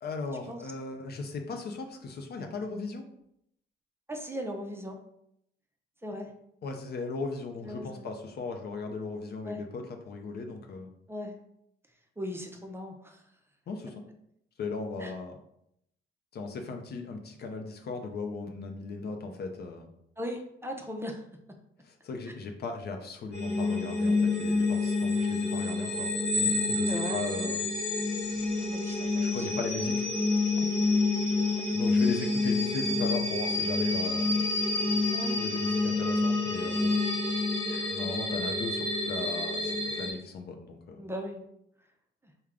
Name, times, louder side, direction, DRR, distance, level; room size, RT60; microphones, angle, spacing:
voice 1, 0.0-3.1 6.6-10.9 13.7-14.0 14.6-15.4 16.3-19.9 21.8-27.7 29.2-30.0 31.7-34.4 35.4-36.9 37.9-41.0, left 3 dB, 55° left, 4 dB, 0.6 m, -37 dB
voice 2, 4.1-5.0 6.0-6.3 7.6-8.1 9.4-9.6 11.1-11.3 12.2-13.2 15.0-15.1 20.2-21.2 26.9-27.2 28.6-29.5 30.6-30.7 35.1-35.4 37.7-38.0 41.0-41.4, equal, 10° right, 2 dB, 0.5 m, -38 dB
sound 1, 23.3-40.1, left 3 dB, 30° left, 1.3 m, -28 dB
3.3 x 2.2 x 3.6 m, 0.75 s
cardioid pair, 90°, 20 cm